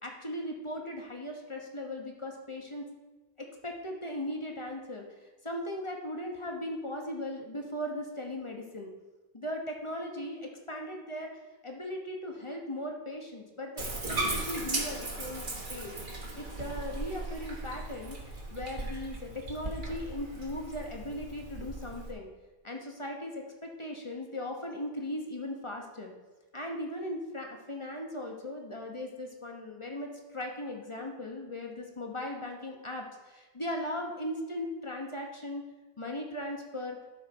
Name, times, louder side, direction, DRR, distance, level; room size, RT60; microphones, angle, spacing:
voice 1, 0.0-2.9 3.4-5.0 5.4-8.9 9.3-11.3 11.6-15.9 16.4-18.2 18.5-22.3 22.6-26.1 26.5-35.6 36.0-37.0, left 1 dB, 30° left, 2 dB, 1.1 m, -38 dB
Bathtub (filling or washing), 13.8-22.1, right 2 dB, 50° right, 1.5 m, -37 dB
12.0 x 4.2 x 6.0 m, 1.2 s
omnidirectional pair, 1.1 m